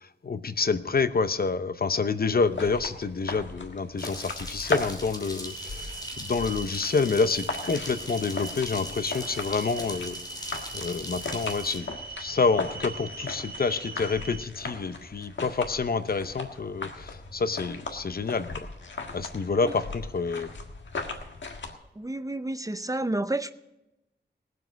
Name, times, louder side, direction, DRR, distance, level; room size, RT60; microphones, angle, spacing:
voice 1, 0.2-10.2 10.7-18.7 19.1-20.5, left 4 dB, 55° left, 0.7 m, -28 dB
sound 1, 2.4-21.7, left 3 dB, 85° left, 1.6 m, -38 dB
sound 2, 4.0-11.8, left 1 dB, 20° left, 2.7 m, -41 dB
sound 3, 5.4-14.4, right 4 dB, 55° right, 1.1 m, -41 dB
voice 2, 22.0-23.5, right 2 dB, 20° right, 0.5 m, -30 dB
19.5 x 7.8 x 5.2 m
wide cardioid pair, 100°, 19 cm